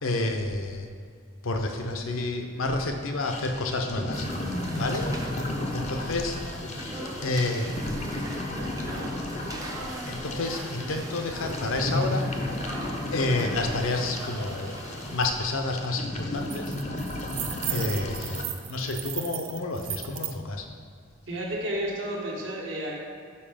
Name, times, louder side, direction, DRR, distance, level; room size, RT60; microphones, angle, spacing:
voice 1, 0.0-0.9 1.4-4.5 4.8-5.1 5.7-6.4 6.8-7.7 10.1-12.6 13.1-17.0 17.7-20.7, left 2 dB, 80° left, 3 dB, 0.7 m, -30 dB
sound 1, 3.2-18.4, left 1 dB, 35° left, 0.5 m, -34 dB
sound 2, 4.1-15.2, right 1 dB, 15° right, 0.5 m, -40 dB
sound 3, 15.2-15.3 15.6-15.9 16.2-20.4, right 13 dB, 85° right, 0.4 m, -36 dB
voice 2, 21.3-22.9, right 1 dB, 65° right, -3 dB, 1.4 m, -32 dB
5.5 x 4.7 x 5.0 m, 2.1 s
head